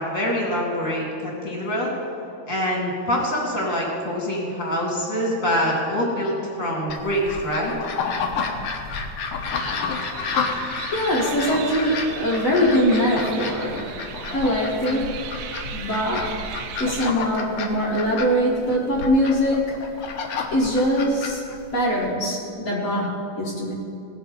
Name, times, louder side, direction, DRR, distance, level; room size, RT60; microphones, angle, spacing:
voice 1, 0.0-1.9 2.5-7.7, equal, 25° left, -2 dB, 2.3 m, -25 dB
sound 1, 6.9-22.1, left 5 dB, 75° left, 1.3 m, -30 dB
sound 2, 9.5-17.1, right 7 dB, 80° right, 2.2 m, -37 dB
voice 2, 10.2-10.5 10.9-13.9 14.3-16.4 16.8-19.9 20.5-21.4 21.7-23.7, equal, 45° left, -6 dB, 1.1 m, -23 dB
18.5 x 6.2 x 5.1 m, 2.7 s
omnidirectional pair, 3.8 m